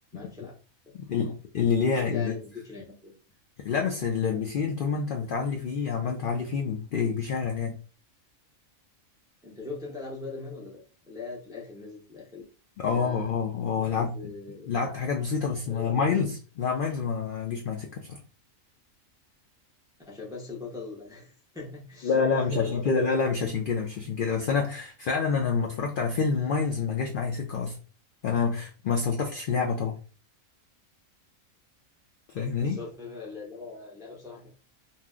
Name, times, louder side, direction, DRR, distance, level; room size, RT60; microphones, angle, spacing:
voice 1, 0.1-0.6 0.9-1.2 1.8-3.2 9.4-12.5 12.9-13.3 13.7-14.8 15.6-16.2 20.1-22.9 32.6-34.5, left 4 dB, 5° right, -3 dB, 0.4 m, -40 dB
voice 2, 1.1-2.3 3.6-7.7 12.8-14.1 14.7-18.2 22.0-27.7 28.2-30.0 32.3-32.8, left 5 dB, 75° left, 1 dB, 0.4 m, -27 dB
2.8 x 2.0 x 3.5 m, 0.38 s
omnidirectional pair, 1.4 m